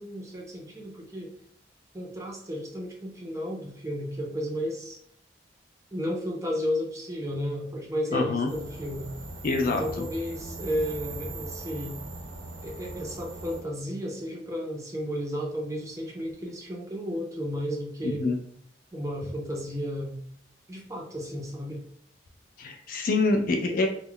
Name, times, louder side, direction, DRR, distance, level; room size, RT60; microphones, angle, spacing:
voice 1, 0.0-1.3 1.9-5.0 5.9-9.1 9.6-12.0 12.6-18.3 18.9-20.2 20.7-21.8, equal, 15° right, -1 dB, 0.5 m, -33 dB
voice 2, 8.1-8.5 9.4-10.1 18.0-18.4 22.6-23.9, left 3 dB, 50° left, 4 dB, 0.3 m, -26 dB
sound 1, 8.5-13.6, right 2 dB, 75° right, 0.5 m, -40 dB
2.2 x 2.0 x 3.6 m, 0.63 s
head